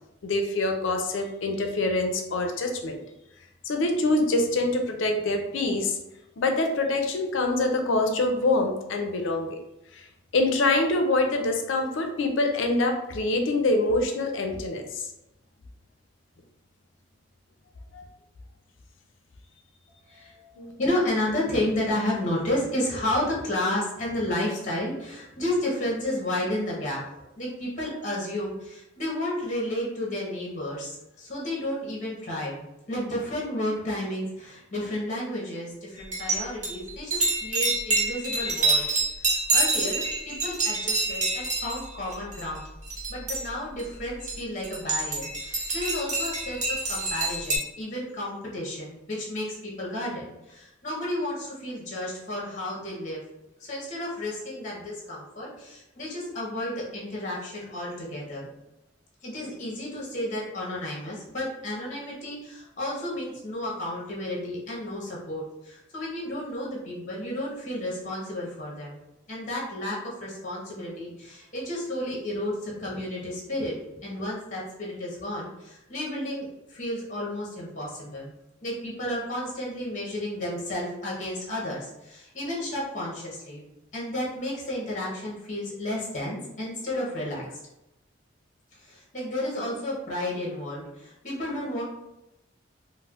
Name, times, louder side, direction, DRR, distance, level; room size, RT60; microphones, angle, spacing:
voice 1, 0.2-3.0 3.6-6.0 6.4-9.6 9.9-10.1 10.3-15.1 17.9-18.0 20.6-20.7, left 2 dB, 75° left, 4 dB, 0.5 m, -25 dB
voice 2, 20.0-20.5 20.8-32.5 32.9-42.7 43.1-53.2 53.6-58.5 59.2-69.0 69.3-78.3 78.6-83.7 83.9-87.6 88.7-91.8, left 1 dB, 40° left, -4 dB, 0.8 m, -32 dB
sound 1, 36.0-36.4 36.6-41.8 42.1-42.6 42.9-43.5 43.8-43.9 44.3-47.6, right 3 dB, 35° right, 0.8 m, -27 dB
4.2 x 2.0 x 2.4 m, 0.91 s
head